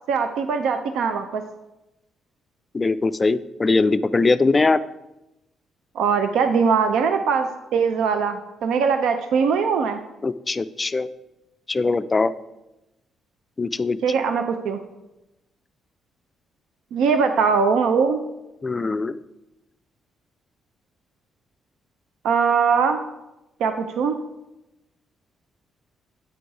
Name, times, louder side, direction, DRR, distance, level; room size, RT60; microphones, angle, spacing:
voice 1, 0.1-1.4 6.0-10.0 14.0-14.8 16.9-18.2 22.2-23.0 23.6-24.1, right 5 dB, 80° right, 7 dB, 0.4 m, -21 dB
voice 2, 2.7-4.8 10.2-11.1 11.7-12.3 13.6-14.0 18.6-19.2, left 3 dB, 25° left, 12 dB, 0.3 m, -21 dB
8.3 x 3.9 x 4.7 m, 0.94 s
cardioid pair, 90°, 0 cm